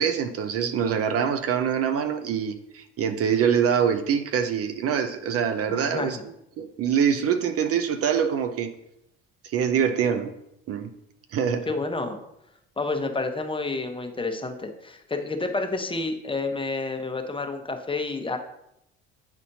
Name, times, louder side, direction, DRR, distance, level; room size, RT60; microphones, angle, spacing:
voice 1, 0.0-6.2 6.6-8.7 9.4-10.3 10.7-10.9 11.3-11.7, right 7 dB, 50° right, 9 dB, 0.6 m, -24 dB
voice 2, 5.7-6.2 11.7-12.2 12.8-18.4, left 3 dB, 15° left, 5 dB, 0.8 m, -29 dB
8.8 x 4.1 x 2.7 m, 0.81 s
hypercardioid pair, 70°, 31 cm